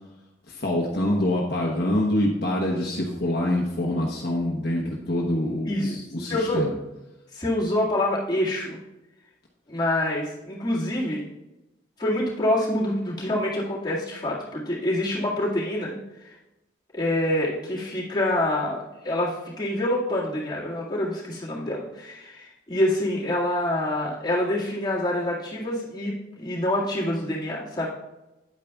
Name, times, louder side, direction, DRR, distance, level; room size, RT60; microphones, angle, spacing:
voice 1, 0.5-6.8, left 1 dB, 55° left, -2 dB, 1.0 m, -25 dB
voice 2, 5.7-6.7 7.3-8.8 9.7-11.2 12.0-16.0 16.2-16.3 16.9-27.9, left 1 dB, 20° left, -7 dB, 1.9 m, -26 dB
9.4 x 8.9 x 2.3 m, 0.98 s
head